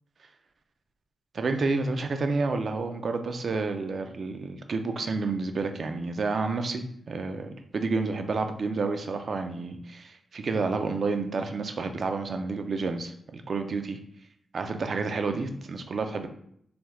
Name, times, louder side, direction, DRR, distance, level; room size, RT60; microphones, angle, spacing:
voice 1, 1.3-14.0 14.5-16.3, right 3 dB, 60° right, 7 dB, 0.4 m, -30 dB
3.4 x 2.9 x 2.3 m, 0.69 s
cardioid pair, 90°, 0 cm